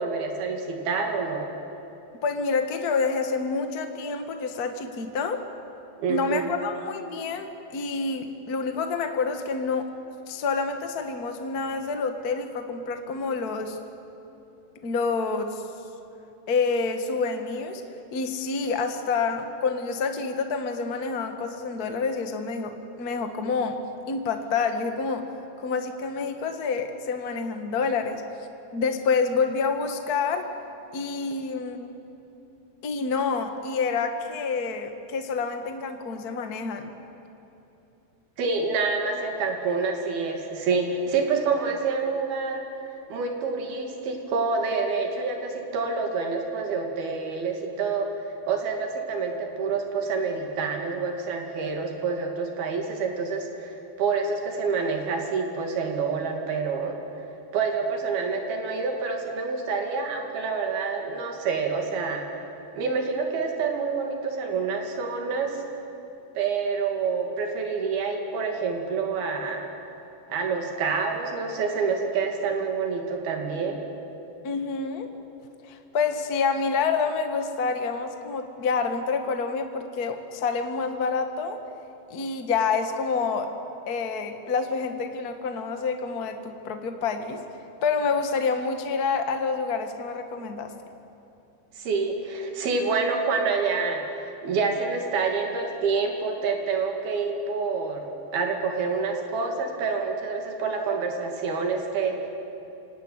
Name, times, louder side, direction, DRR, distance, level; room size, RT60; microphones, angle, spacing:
voice 1, 0.0-1.5 6.0-6.5 38.4-42.7 43.1-48.1 48.5-57.0 57.5-62.3 62.8-65.6 66.4-69.7 70.3-73.8 91.8-98.0 98.3-102.2, right 4 dB, 80° right, 3 dB, 4.5 m, -27 dB
voice 2, 2.2-5.4 6.1-9.9 10.3-13.8 14.8-15.6 16.5-17.8 18.1-23.8 24.1-25.3 25.6-28.2 28.7-30.5 30.9-31.9 32.8-36.9 74.4-75.1 75.7-81.6 82.1-83.5 83.9-87.4 87.8-90.7, left 4 dB, 55° left, 6 dB, 1.0 m, -28 dB
26.5 x 18.0 x 9.7 m, 2.9 s
omnidirectional pair, 4.3 m